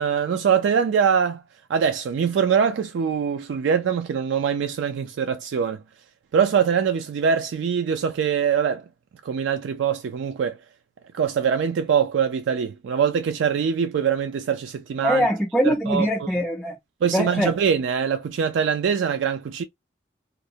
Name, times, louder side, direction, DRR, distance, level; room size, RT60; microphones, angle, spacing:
voice 1, 0.0-1.4 1.7-5.8 6.3-8.8 9.2-10.6 11.1-15.3 15.6-16.1 17.0-19.6, right 7 dB, 90° right, 0.3 m, -23 dB
voice 2, 15.0-16.8 17.1-17.5, equal, 5° left, 0.4 m, -22 dB
2.5 x 2.0 x 2.6 m
head